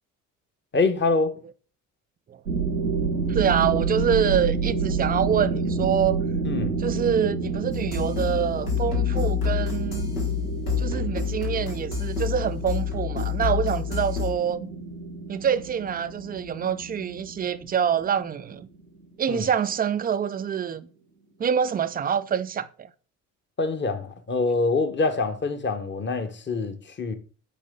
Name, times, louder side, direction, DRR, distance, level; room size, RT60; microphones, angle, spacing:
voice 1, 0.7-1.4 6.4-6.7 19.3-19.5 23.6-27.2, left 3 dB, 25° left, 1.1 m, -25 dB
sound 1, 2.5-19.0, right 4 dB, 90° right, 0.7 m, -29 dB
voice 2, 3.3-6.2 6.8-10.1 10.8-14.7 15.3-18.7 19.2-20.9 21.4-22.9, right 8 dB, 20° right, 0.4 m, -26 dB
sound 2, 7.7-14.3, left 9 dB, 80° left, 1.6 m, -28 dB
8.5 x 4.5 x 3.7 m
figure-of-eight pair, 45°, 45 cm